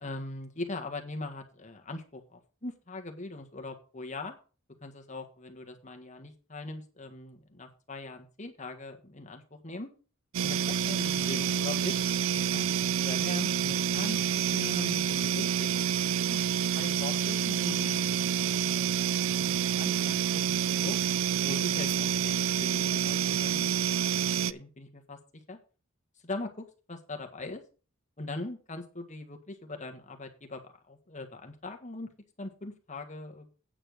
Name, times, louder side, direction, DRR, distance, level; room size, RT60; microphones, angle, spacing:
voice 1, 0.0-4.4 4.8-9.9 10.4-12.0 12.5-14.2 14.5-16.0 16.3-16.4 16.7-21.0 21.4-23.9 24.5-25.2 25.5-25.6 26.2-27.6 28.2-32.1 32.4-33.5, left 2 dB, 35° left, 5 dB, 1.7 m, -41 dB
sound 1, 10.3-24.5, right 8 dB, 70° right, 0.4 m, -28 dB
9.0 x 7.1 x 5.2 m, 0.35 s
head